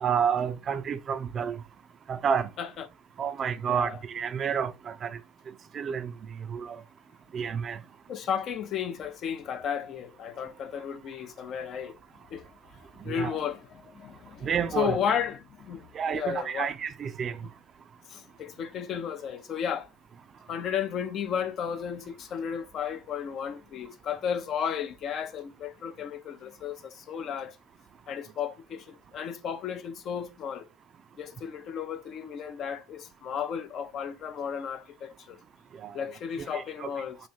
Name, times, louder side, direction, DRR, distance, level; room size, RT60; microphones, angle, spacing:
voice 1, 0.0-1.5 2.1-2.5 3.2-5.2 5.7-6.1 6.5-6.8 7.3-7.8 13.1-13.4 14.4-15.0 16.0-17.3 35.8-35.9 36.5-36.9, right 7 dB, 40° right, 0.4 m, -29 dB
voice 2, 3.7-4.0 8.1-12.0 12.3-12.4 12.8-13.6 13.9-16.7 18.1-19.9 20.5-27.6 28.1-30.7 31.2-35.4 35.9-37.2, left 8 dB, 50° left, 0.6 m, -33 dB
3.1 x 2.7 x 4.2 m
hypercardioid pair, 75°, 0 cm